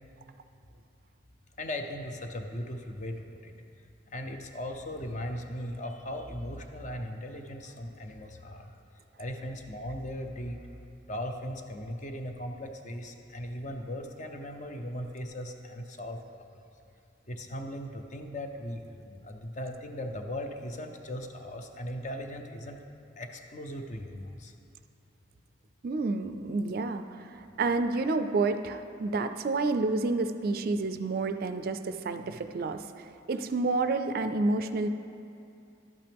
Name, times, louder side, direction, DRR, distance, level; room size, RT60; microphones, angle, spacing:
voice 1, 1.6-3.6 4.1-8.8 9.2-10.6 11.1-16.6 17.3-22.8 23.2-24.5, left 1 dB, 40° left, 4 dB, 0.6 m, -38 dB
voice 2, 25.8-32.8 33.3-34.9, right 3 dB, 50° right, 9 dB, 0.4 m, -29 dB
11.5 x 8.7 x 3.5 m, 2.6 s
head